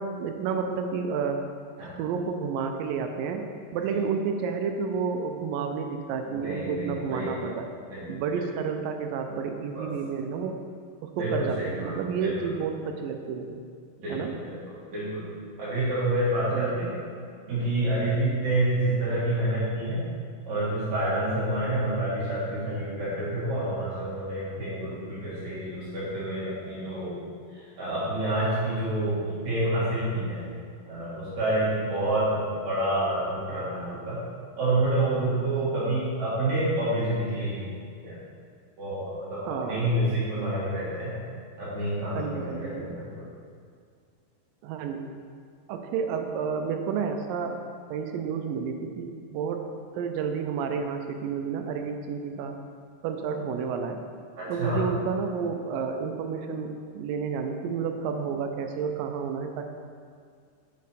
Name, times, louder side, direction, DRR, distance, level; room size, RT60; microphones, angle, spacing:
voice 1, 0.0-1.4 2.0-3.5 3.7-7.7 8.1-10.6 11.0-13.6 14.1-14.3 16.5-16.9 39.4-39.9 42.0-43.0 44.6-45.1 45.7-47.6 47.9-49.7 50.0-52.6 53.0-54.0 54.5-59.7, right 6 dB, 80° right, 5 dB, 2.1 m, -30 dB
voice 2, 6.2-7.4 7.9-8.0 8.3-8.5 9.7-9.9 11.1-12.7 14.0-15.2 15.6-16.9 17.5-20.0 20.5-27.2 27.8-30.4 30.9-34.2 34.6-37.6 38.0-38.2 38.8-41.1 41.6-43.3 54.4-54.8, right 1 dB, 55° right, -9 dB, 2.9 m, -28 dB
8.4 x 5.3 x 4.1 m, 2.1 s
omnidirectional pair, 4.2 m